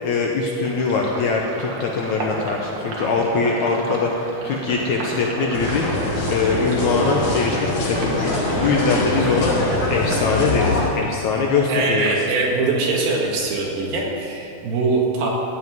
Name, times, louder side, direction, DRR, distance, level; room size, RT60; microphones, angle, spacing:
voice 1, 0.0-5.9 6.2-9.5 9.9-12.1, left 4 dB, 70° left, -1 dB, 1.9 m, -22 dB
Sink (filling or washing), 0.6-12.9 13.3-14.7, right 2 dB, 50° right, 2.3 m, -34 dB
sound 1, 5.5-10.9, left 2 dB, 85° left, 4.8 m, -23 dB
voice 2, 11.7-15.3, right 3 dB, 75° right, -2 dB, 3.6 m, -22 dB
15.0 x 5.5 x 9.3 m, 2.6 s
omnidirectional pair, 4.3 m